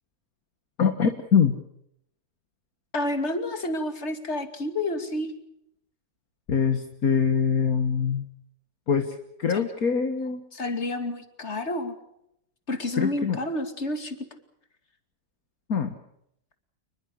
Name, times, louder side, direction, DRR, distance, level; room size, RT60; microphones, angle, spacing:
voice 1, 0.8-1.6 6.5-8.3 8.9-10.4 13.0-13.4 15.7-15.9, left 6 dB, 55° left, 7 dB, 2.0 m, -24 dB
voice 2, 2.9-5.3 9.5-9.7 10.5-11.9 12.7-14.2, left 1 dB, 40° left, 8 dB, 2.8 m, -29 dB
28.5 x 21.0 x 6.5 m, 0.77 s
omnidirectional pair, 1.9 m